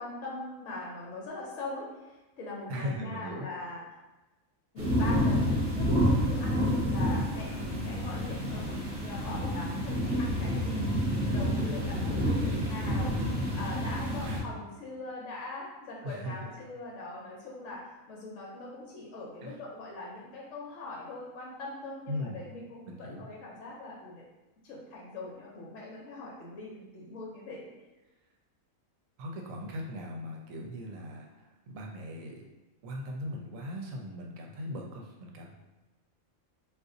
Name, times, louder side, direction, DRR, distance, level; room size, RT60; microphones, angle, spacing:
voice 1, 0.0-3.8 4.7-24.2 24.6-27.7, left 2 dB, 70° left, -4 dB, 1.0 m, -42 dB
voice 2, 2.7-3.5 11.7-13.0 14.2-14.5 16.0-16.4 19.4-19.6 22.1-22.4 22.9-23.3 29.2-32.5 32.8-35.5, left 1 dB, 75° right, 0 dB, 0.9 m, -39 dB
sound 1, 4.8-14.4, equal, 40° right, 0.9 m, -29 dB
2.5 x 2.4 x 3.7 m, 1.1 s
omnidirectional pair, 1.5 m